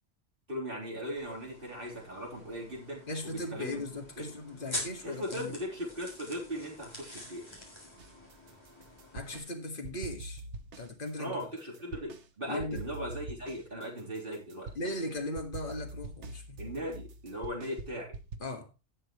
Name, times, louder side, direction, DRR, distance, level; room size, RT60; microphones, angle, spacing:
voice 1, 0.5-3.8 4.2-4.3 5.0-7.7 11.2-14.7 16.6-18.1, equal, 50° right, 3.7 m, -38 dB
sound 1, 1.2-9.4, left 1 dB, 25° left, 3.6 m, -45 dB
voice 2, 3.1-5.6 9.1-10.4 10.8-11.4 12.5-12.8 14.8-16.6 18.4-18.7, left 1 dB, 50° left, 1.9 m, -38 dB
sound 2, 8.0-9.5 9.8-12.3 12.6-18.4, right 2 dB, 90° right, 1.3 m, -44 dB
16.5 x 6.5 x 3.0 m
omnidirectional pair, 1.1 m